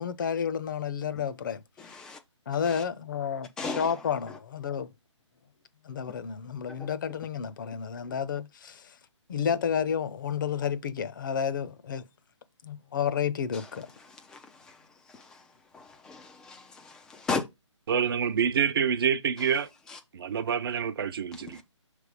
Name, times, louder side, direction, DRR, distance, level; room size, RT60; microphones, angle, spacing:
voice 1, 0.0-1.6 2.5-4.9 5.8-8.9 9.3-12.0 12.6-13.9, left 7 dB, 40° left, 0.7 m, -31 dB
voice 2, 1.8-2.2 2.7-2.8 3.6-3.9 6.8-6.9 13.5-13.6 14.3-14.4 14.7-14.8 15.1-15.4 15.7-17.4 21.5-21.6, left 4 dB, 5° left, 0.3 m, -35 dB
voice 3, 17.9-19.7 20.1-21.6, right 7 dB, 45° right, 0.7 m, -27 dB
6.2 x 3.3 x 5.0 m
figure-of-eight pair, 145°, 16 cm